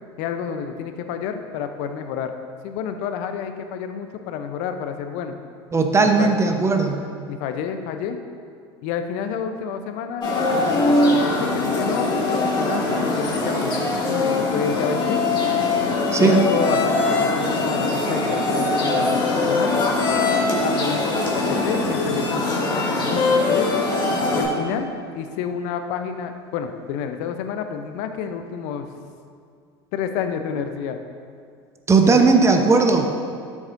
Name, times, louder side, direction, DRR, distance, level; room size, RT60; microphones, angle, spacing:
voice 1, 0.2-2.3 2.6-5.3 6.0-6.4 7.3-8.2 8.8-15.2 16.2-19.8 20.6-23.8 24.3-28.9 29.9-31.0 32.0-32.2, left 7 dB, 60° left, 7 dB, 0.8 m, -29 dB
voice 2, 5.7-7.0 16.1-16.4 31.9-33.1, right 4 dB, 20° right, 4 dB, 0.9 m, -17 dB
sound 1, 10.2-24.4, left 2 dB, 35° left, 2.3 m, -21 dB
13.0 x 7.3 x 2.6 m, 2.2 s
hypercardioid pair, 85°, 14 cm